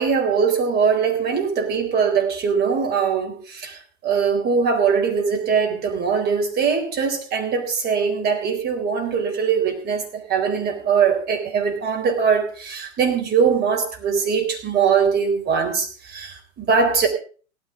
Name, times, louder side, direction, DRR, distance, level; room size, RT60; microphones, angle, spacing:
voice 1, 0.0-17.1, right 6 dB, 25° right, 3 dB, 4.1 m, -21 dB
17.0 x 13.5 x 3.9 m, 0.40 s
hypercardioid pair, 120°, 40 cm